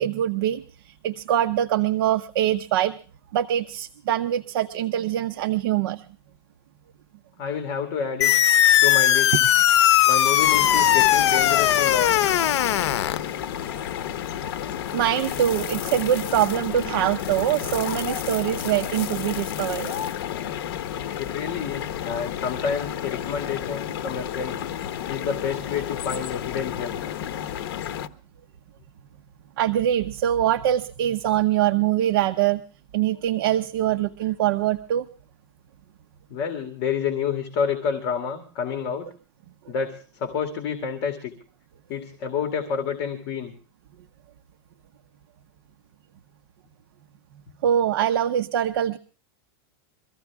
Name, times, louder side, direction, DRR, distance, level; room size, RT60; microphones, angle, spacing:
voice 1, 0.0-2.9 3.3-6.1 13.7-13.9 14.9-20.0 29.6-32.6 32.9-35.1 47.6-49.0, right 11 dB, 55° right, 9 dB, 0.7 m, -23 dB
voice 2, 7.4-8.3 8.8-9.5 10.1-12.2 21.2-24.6 25.1-27.0 36.3-39.1 39.7-41.3 41.9-43.5, left 7 dB, 35° left, 6 dB, 2.1 m, -29 dB
sound 1, 8.2-13.2, left 12 dB, 90° left, 0.7 m, -18 dB
sound 2, 10.4-28.1, left 10 dB, 55° left, 1.1 m, -31 dB
23.5 x 15.0 x 3.5 m, 0.38 s
supercardioid pair, 175°, 14 cm